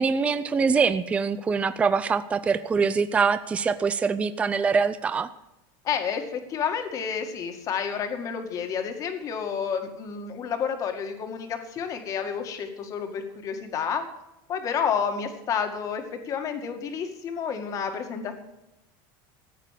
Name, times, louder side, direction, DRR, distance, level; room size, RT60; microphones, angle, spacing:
voice 1, 0.0-5.3, right 5 dB, 10° right, 12 dB, 0.4 m, -24 dB
voice 2, 5.8-14.1 14.5-18.4, left 7 dB, 30° left, 6 dB, 1.9 m, -30 dB
14.5 x 9.0 x 7.5 m, 0.91 s
supercardioid pair, 170°, 12 cm